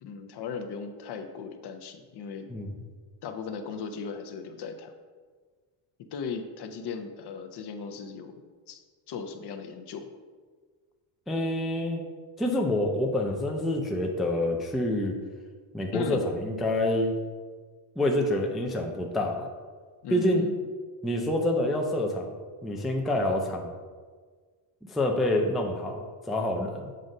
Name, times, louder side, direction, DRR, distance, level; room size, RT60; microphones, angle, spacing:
voice 1, 0.0-2.5 3.2-4.9 6.1-8.8 9.1-10.1 15.9-16.2 20.0-20.6, left 5 dB, 55° left, 7 dB, 0.7 m, -37 dB
voice 2, 11.3-12.0 12.4-15.1 15.7-17.1 18.0-19.5 20.1-20.4 21.0-22.3 22.6-23.7 24.9-26.9, left 1 dB, ahead, 1 dB, 0.4 m, -27 dB
7.5 x 2.5 x 5.3 m, 1.5 s
cardioid pair, 125°, 48 cm